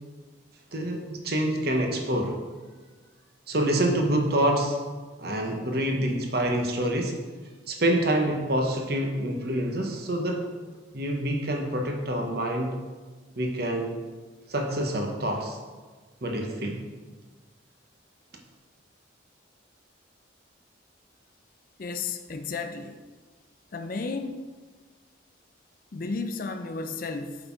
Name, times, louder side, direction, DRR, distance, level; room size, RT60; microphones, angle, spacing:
voice 1, 0.7-2.4 3.5-4.8 5.2-7.2 7.7-10.5 10.9-12.8 13.4-14.0 14.5-15.6 16.2-16.8, right 1 dB, 55° right, 3 dB, 1.0 m, -26 dB
voice 2, 21.8-23.0 23.7-24.4 25.9-27.3, left 4 dB, 45° left, 8 dB, 0.4 m, -33 dB
7.8 x 3.9 x 4.5 m, 1.4 s
head